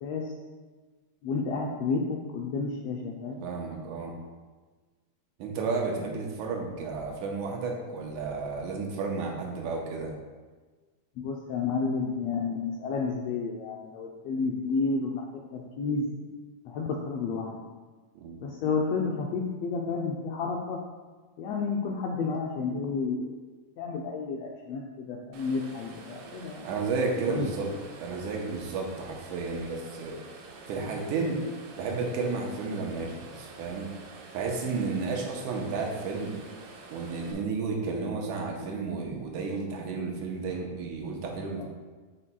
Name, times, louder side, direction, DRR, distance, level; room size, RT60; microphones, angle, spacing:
voice 1, 1.2-3.5 11.2-15.2 15.5-16.1 16.7-17.7 18.4-20.8 21.4-23.3 23.8-26.7 27.3-27.5 41.6-41.7, left 4 dB, 80° left, 0 dB, 1.5 m, -31 dB
voice 2, 3.4-4.1 5.4-10.1 18.2-18.4 26.6-27.7 28.0-30.1 30.7-31.4 31.8-33.9 34.3-36.3 36.9-41.6, right 4 dB, 90° right, 0 dB, 2.3 m, -32 dB
sound 1, 25.3-37.3, right 3 dB, 70° right, 1.6 m, -47 dB
7.1 x 6.7 x 2.3 m, 1.4 s
omnidirectional pair, 3.3 m